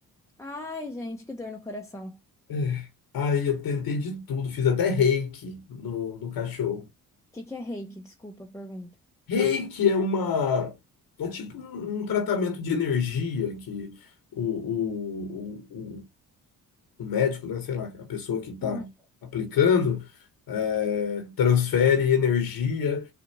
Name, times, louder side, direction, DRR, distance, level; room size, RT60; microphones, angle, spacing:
voice 1, 0.4-2.2 7.3-8.9 18.6-18.9, left 2 dB, 5° left, 0.7 m, -38 dB
voice 2, 2.5-2.9 3.1-6.9 9.3-10.7 11.2-14.0 14.3-16.0 17.0-18.9 19.3-20.0 20.5-23.1, left 6 dB, 65° left, 1.1 m, -26 dB
4.4 x 2.5 x 2.7 m
supercardioid pair, 55°, 39 cm